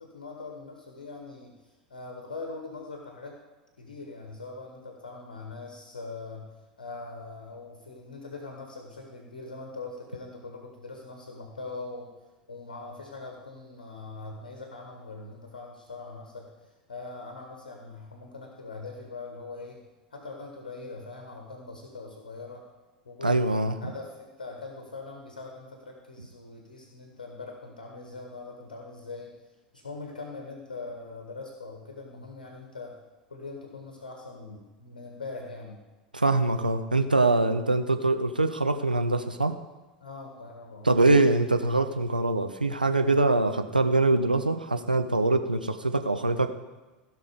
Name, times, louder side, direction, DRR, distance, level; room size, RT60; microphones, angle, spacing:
voice 1, 0.0-3.4 3.8-6.5 6.8-12.1 12.5-16.5 16.9-19.8 20.1-22.6 23.0-23.4 23.8-29.3 29.7-32.9 33.3-35.8 40.0-41.0, left 3 dB, 70° left, 2 dB, 1.5 m, -42 dB
voice 2, 23.2-23.7 36.1-39.5 40.8-46.6, right 2 dB, 85° right, 7 dB, 0.7 m, -23 dB
16.0 x 5.8 x 5.1 m, 1.2 s
figure-of-eight pair, 80°, 5 cm